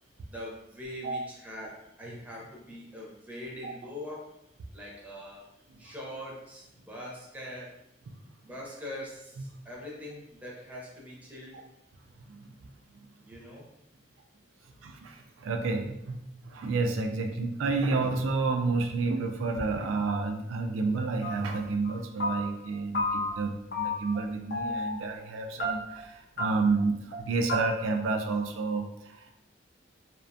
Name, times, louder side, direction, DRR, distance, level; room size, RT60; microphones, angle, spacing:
voice 1, 0.3-4.3 4.7-5.5 5.8-7.8 8.4-11.7 13.2-13.7, left 1 dB, 10° right, -4 dB, 0.6 m, -42 dB
voice 2, 14.8-16.2 16.4-29.4, right 3 dB, 90° right, 3 dB, 0.3 m, -30 dB
sound 1, 21.2-21.6 21.8-22.7 22.9-23.5 23.7-24.3 24.5-25.0 25.6-26.1 26.4-26.5 26.8-26.9 27.1-27.2 27.5-27.6, left 1 dB, 55° left, 0.5 m, -32 dB
2.4 x 2.2 x 2.6 m, 0.82 s
head